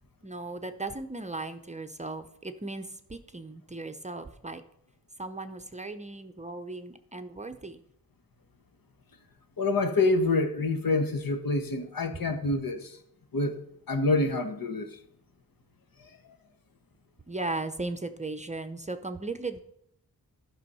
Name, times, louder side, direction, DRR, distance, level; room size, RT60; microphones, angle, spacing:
voice 1, 0.2-4.6 5.2-7.8 17.3-19.6, right 2 dB, 20° right, 0.6 m, -37 dB
voice 2, 9.6-13.0 13.3-13.6 13.9-15.0 16.0-16.2, left 3 dB, 65° left, 1.2 m, -27 dB
11.5 x 6.2 x 5.5 m
wide cardioid pair, 100°, 37 cm